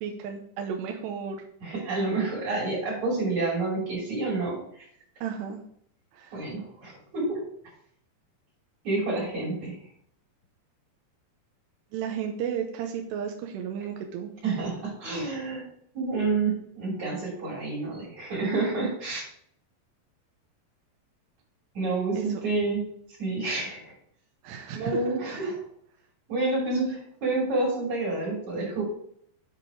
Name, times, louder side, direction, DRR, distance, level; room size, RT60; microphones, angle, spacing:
voice 1, 0.0-1.4 5.2-5.6 6.1-6.5 11.9-14.3 22.1-22.3 24.4-25.1, right 8 dB, 85° right, 3 dB, 2.9 m, -33 dB
voice 2, 1.6-4.8 6.3-7.4 8.8-9.8 14.4-15.6 15.9-19.2 21.7-22.8 23.2-23.9 24.7-25.6 26.3-28.8, right 3 dB, 45° right, -7 dB, 4.3 m, -29 dB
8.2 x 4.9 x 4.9 m, 0.66 s
omnidirectional pair, 4.8 m